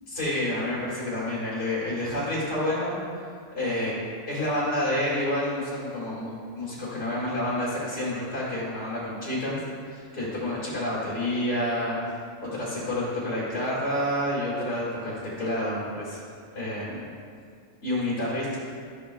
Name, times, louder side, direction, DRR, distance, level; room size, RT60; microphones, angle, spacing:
voice 1, 0.1-3.0 3.5-4.0 4.3-12.0 12.4-16.2 16.5-17.1 17.8-18.6, left 1 dB, 70° left, -10 dB, 2.7 m, -29 dB
13.0 x 8.7 x 2.3 m, 2.2 s
omnidirectional pair, 1.3 m